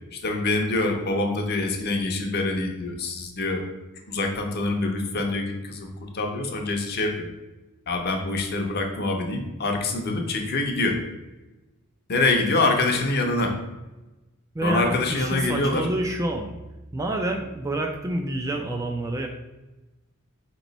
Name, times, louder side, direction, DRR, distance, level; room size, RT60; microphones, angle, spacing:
voice 1, 0.1-3.7 4.1-7.3 7.9-11.0 12.1-13.5 14.6-15.9, left 2 dB, 45° left, 3 dB, 0.7 m, -25 dB
voice 2, 14.5-16.5 16.9-19.3, right 1 dB, 15° right, 2 dB, 0.3 m, -27 dB
4.3 x 3.0 x 3.9 m, 1.1 s
head